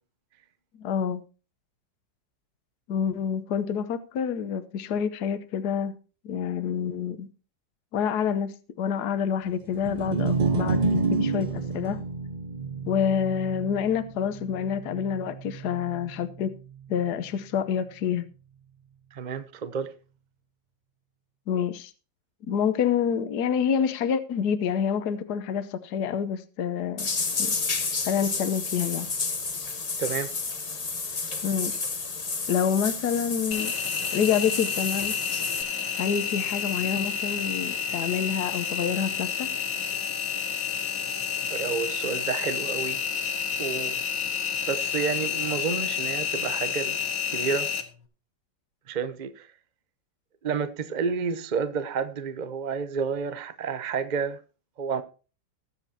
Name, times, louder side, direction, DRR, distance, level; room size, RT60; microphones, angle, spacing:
voice 1, 0.7-1.2 2.9-5.9 6.2-7.3 7.9-12.0 12.9-16.5 16.9-18.3 21.5-21.9 22.4-27.1 27.4-27.6 28.0-29.1 31.4-31.8 32.5-33.7 34.1-35.2 36.0-39.5, left 7 dB, 70° left, 1.4 m, -27 dB
sound 1, 9.7-16.1, right 4 dB, 80° right, 0.4 m, -29 dB
voice 2, 19.1-19.9 30.0-30.3 41.5-43.0 43.6-44.0 44.7-47.0 47.3-47.7 48.9-49.5 50.4-54.4 54.8-55.0, right 6 dB, 40° right, 0.7 m, -30 dB
sound 2, 27.0-35.6, left 4 dB, 30° left, 0.8 m, -31 dB
Engine, 33.5-47.8, left 8 dB, 85° left, 2.2 m, -30 dB
20.5 x 7.7 x 2.8 m
omnidirectional pair, 1.9 m